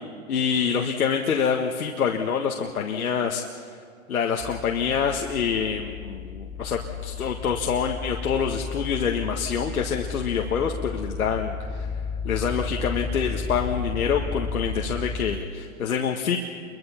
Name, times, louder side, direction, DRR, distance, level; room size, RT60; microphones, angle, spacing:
voice 1, 0.3-3.4 4.1-11.9 12.2-16.4, left 7 dB, 80° left, 1 dB, 1.7 m, -26 dB
sound 1, 4.4-15.4, left 4 dB, 10° left, 0.7 m, -33 dB
27.5 x 23.5 x 5.8 m, 2.1 s
hypercardioid pair, 130°, 42 cm